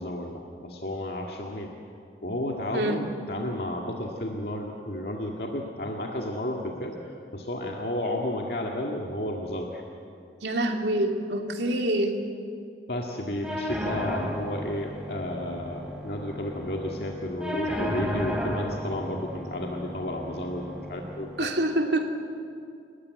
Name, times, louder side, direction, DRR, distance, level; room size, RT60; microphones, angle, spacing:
voice 1, 0.0-1.7 2.2-9.8 12.9-21.5, left 1 dB, 65° left, 0 dB, 2.0 m, -32 dB
voice 2, 10.4-12.1 21.4-22.1, right 1 dB, 80° right, 3 dB, 2.5 m, -26 dB
sound 1, 13.4-21.4, equal, 5° right, 2.9 m, -33 dB
29.5 x 14.5 x 9.4 m, 2.4 s
head